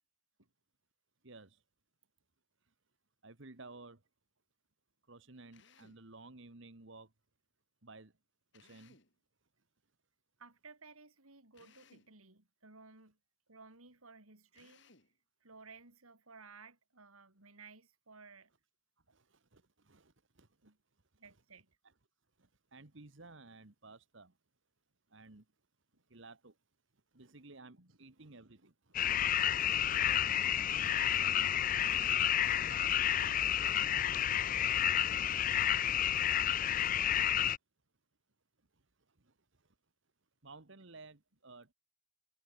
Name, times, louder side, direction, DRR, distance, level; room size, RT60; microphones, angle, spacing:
voice 1, 1.2-1.6 2.6-2.7 3.2-4.0 5.1-7.1 7.8-8.1 8.5-9.0 19.1-20.7 22.4-24.3 25.1-25.4 26.1-26.6 27.1-29.0 29.9-30.1 33.7-34.8 38.7-39.7 40.4-41.7, right 3 dB, 60° right, 1.5 m, -56 dB
Drill, 5.5-6.1 8.5-9.2 11.5-12.2 14.5-15.2, left 4 dB, 55° left, 5.4 m, -64 dB
voice 2, 10.4-13.2 13.5-14.8 15.4-18.5 19.1-19.2 20.6-20.8 21.2-21.7 25.9-26.0 27.8-28.0 28.6-28.7 29.7-33.1, right 4 dB, 85° right, 4.6 m, -57 dB
sound 1, 28.9-37.6, left 10 dB, 40° left, 0.4 m, -30 dB
head